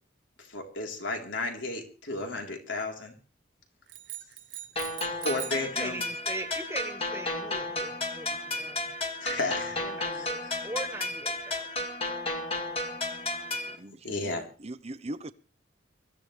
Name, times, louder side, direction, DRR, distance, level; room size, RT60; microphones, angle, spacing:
voice 1, 0.5-3.1 5.2-6.0 9.2-9.8 10.1-10.6 14.0-14.5, left 2 dB, 80° left, 3.9 m, -33 dB
sound 1, 3.9-5.7, right 15 dB, 75° right, 1.2 m, -41 dB
sound 2, 4.8-13.8, left 2 dB, 30° left, 2.0 m, -33 dB
voice 2, 5.8-9.0 9.7-11.8, right 1 dB, 15° right, 1.6 m, -40 dB
voice 3, 13.7-14.3 14.6-15.3, right 1 dB, 35° right, 0.8 m, -40 dB
24.0 x 14.5 x 3.4 m
head